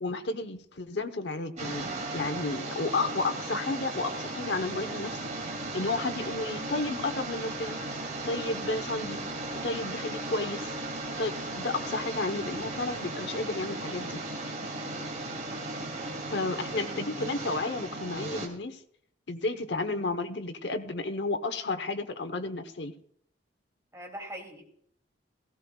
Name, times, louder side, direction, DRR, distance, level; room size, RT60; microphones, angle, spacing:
voice 1, 0.0-5.2 5.7-7.8 8.3-9.2 9.6-10.7 11.2-14.2 16.3-18.8 19.3-22.9, left 3 dB, 65° left, 9 dB, 1.0 m, -32 dB
sound 1, 1.6-18.5, right 2 dB, 40° right, 2.7 m, -36 dB
voice 2, 14.6-15.0 23.9-24.6, right 1 dB, 15° right, 1 dB, 2.7 m, -43 dB
17.0 x 16.0 x 2.4 m, 0.65 s
head